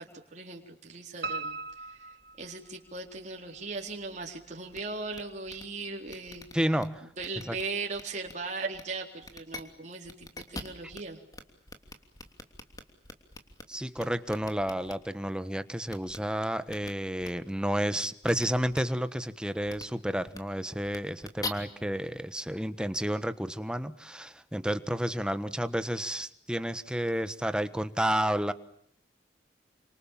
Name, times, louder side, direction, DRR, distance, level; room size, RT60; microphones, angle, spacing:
voice 1, 0.0-6.5 7.0-11.2, right 3 dB, 40° right, 4.1 m, -38 dB
Piano, 1.2-3.2 3.6-4.4 4.8-4.9 5.3-5.4 5.7-5.8, right 3 dB, 60° right, 1.6 m, -39 dB
sound 1, 4.7-4.8 5.1-5.2 5.5-5.6 6.1-6.8 7.2-7.6 7.9-8.3 8.7-8.8 9.2-9.6 10.0-11.0 11.3-11.4 11.7-13.6 14.0-14.9 15.9-16.2 16.7-16.9 17.2-17.3 18.2-18.4 18.7-18.8 19.7-19.8 20.3-20.4 20.8-21.5, left 3 dB, 20° left, 3.1 m, -42 dB
voice 2, 6.5-7.1 7.5-7.6 13.7-28.5, equal, 5° right, 1.3 m, -31 dB
29.5 x 27.0 x 7.4 m
head